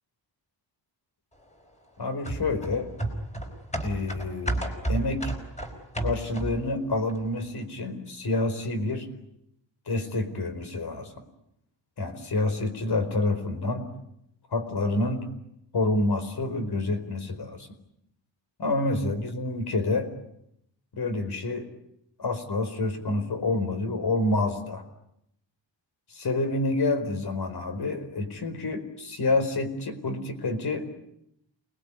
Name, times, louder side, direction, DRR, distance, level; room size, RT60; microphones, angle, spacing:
voice 1, 2.0-2.9 3.8-4.6 4.9-5.3 6.0-9.1 9.9-11.1 12.0-13.8 14.5-15.3 15.7-17.7 18.6-20.1 20.9-21.7 22.2-24.8 26.1-30.9, left 2 dB, 55° left, 8 dB, 4.7 m, -28 dB
sound 1, 2.2-6.7 7.1-7.2, right 1 dB, 15° left, 4.8 m, -32 dB
29.0 x 21.0 x 9.8 m, 0.78 s
wide cardioid pair, 170°, 46 cm